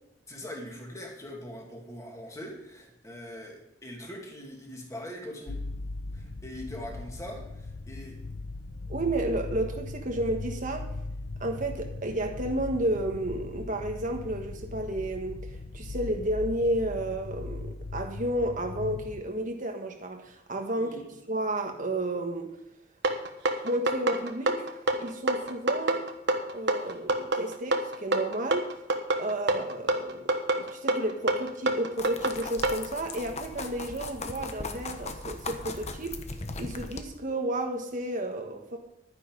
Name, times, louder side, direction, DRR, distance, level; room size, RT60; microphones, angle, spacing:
voice 1, 0.3-5.6 6.1-8.2 20.7-21.1, left 1 dB, 20° left, 0 dB, 2.5 m, -42 dB
sound 1, 5.5-19.2, left 3 dB, 80° left, 0.7 m, -39 dB
voice 2, 8.9-10.9 11.4-15.4 15.7-20.9 21.3-22.5 23.6-26.0 26.5-28.7 29.2-36.2 36.6-38.8, right 1 dB, 45° right, 3 dB, 1.3 m, -32 dB
sound 2, 23.0-32.8, right 2 dB, 70° right, 1.3 m, -26 dB
sound 3, 32.0-37.0, left 3 dB, 40° left, 1.0 m, -38 dB
11.0 x 9.9 x 5.2 m, 0.85 s
head